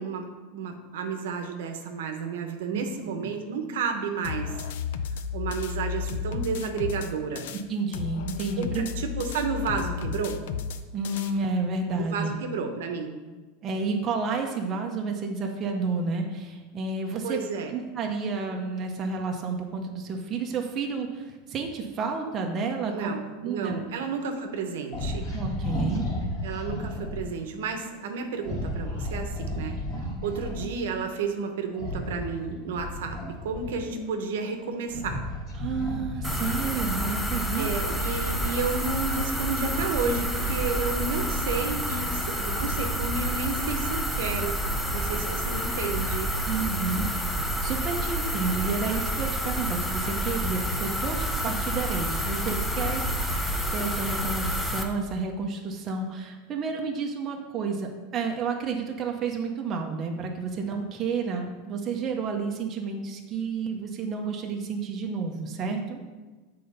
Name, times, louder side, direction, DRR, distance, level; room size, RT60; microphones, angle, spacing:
voice 1, 0.0-4.5 5.3-7.4 8.6-8.7 9.0-10.4 12.0-13.1 17.2-17.7 22.8-25.3 26.4-29.8 30.2-35.2 37.5-44.6 44.9-46.3, right 5 dB, 85° right, 5 dB, 0.9 m, -31 dB
sound 1, 4.2-7.6 7.9-11.3, left 6 dB, 75° left, 0.5 m, -33 dB
voice 2, 7.7-8.9 10.9-12.3 13.6-17.4 17.7-23.8 25.3-26.1 35.6-37.7 46.5-66.0, right 4 dB, 25° right, 1 dB, 0.8 m, -31 dB
sound 2, 24.9-27.2 28.4-30.7 31.7-34.0 34.6-37.0, left 1 dB, 40° left, 2.2 m, -33 dB
sound 3, 36.2-54.8, equal, 5° left, 0.6 m, -29 dB
7.6 x 3.8 x 5.4 m, 1.3 s
supercardioid pair, 150°, 0 cm